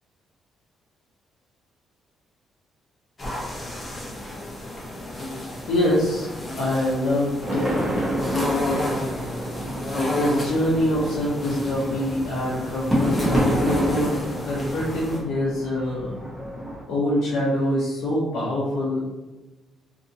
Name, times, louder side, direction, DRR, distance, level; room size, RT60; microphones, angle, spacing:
sound 1, 3.2-15.2, left 1 dB, 20° left, 0.8 m, -31 dB
voice 1, 5.7-6.3 6.6-7.9 10.1-16.2 16.9-19.1, left 1 dB, 90° left, -7 dB, 0.6 m, -24 dB
sound 2, 7.4-16.8, equal, 5° right, 0.9 m, -29 dB
2.7 x 2.5 x 2.7 m, 1.1 s
cardioid pair, 135°, 0 cm